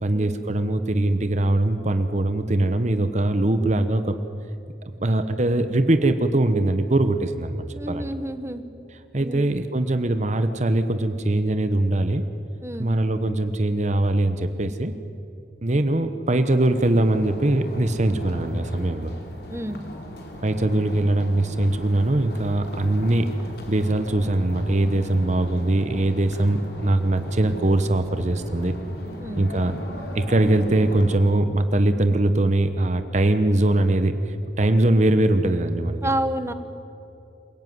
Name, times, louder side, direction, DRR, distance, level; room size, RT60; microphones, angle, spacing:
voice 1, 0.0-4.2 5.0-8.1 9.1-12.2 12.8-14.9 15.6-19.1 20.4-23.3 23.7-28.8 29.4-29.7 30.1-36.1, right 1 dB, 40° right, 9 dB, 1.0 m, -22 dB
voice 2, 7.7-8.6 9.2-9.4 12.6-12.9 19.5-19.9 29.2-29.4 36.0-36.5, right 1 dB, 15° right, 10 dB, 1.2 m, -29 dB
sound 1, 16.7-31.2, equal, 60° left, 3.6 m, -37 dB
27.5 x 17.5 x 9.5 m, 2.8 s
head